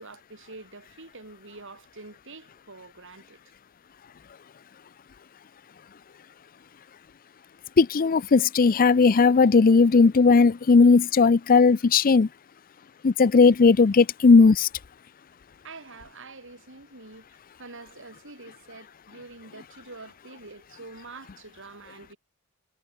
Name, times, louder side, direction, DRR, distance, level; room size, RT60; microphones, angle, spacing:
voice 1, 0.0-3.4 15.6-17.3 17.6-22.2, right 3 dB, 60° right, 4.6 m, -46 dB
voice 2, 7.8-12.3 13.0-14.7, left 4 dB, 40° left, 0.5 m, -17 dB
head